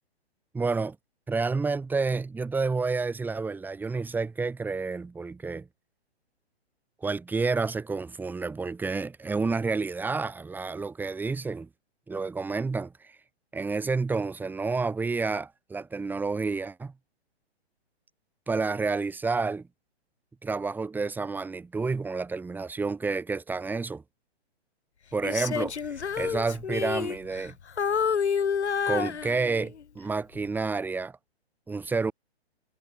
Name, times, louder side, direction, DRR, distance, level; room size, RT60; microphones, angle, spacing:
voice 1, 0.5-0.9 1.3-5.7 7.0-11.7 12.1-13.1 13.5-16.9 18.5-19.7 20.4-24.0 25.1-27.5 28.9-31.2 31.7-32.1, right 4 dB, 5° right, 1.7 m, -29 dB
Female singing, 25.2-27.5 27.8-29.8 30.4-30.6, left 7 dB, 80° left, 1.6 m, -29 dB
hypercardioid pair, 140°, 33 cm